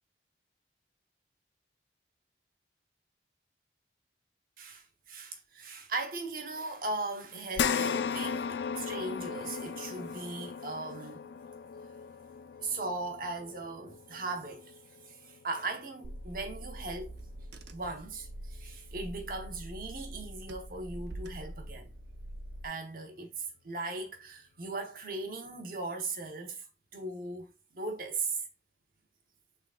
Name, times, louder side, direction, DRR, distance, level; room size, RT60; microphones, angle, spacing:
voice 1, 4.6-11.3 12.6-14.8 15.0-17.1 17.7-21.9 22.6-26.6 26.9-28.4, right 3 dB, 50° right, 0.9 m, -38 dB
sound 1, 7.5-16.2 16.6-16.7 18.2-18.3, left 6 dB, 75° left, 0.3 m, -36 dB
Car / Engine, 16.0-22.7, right 1 dB, 70° right, 0.6 m, -44 dB
6.0 x 3.6 x 2.5 m
head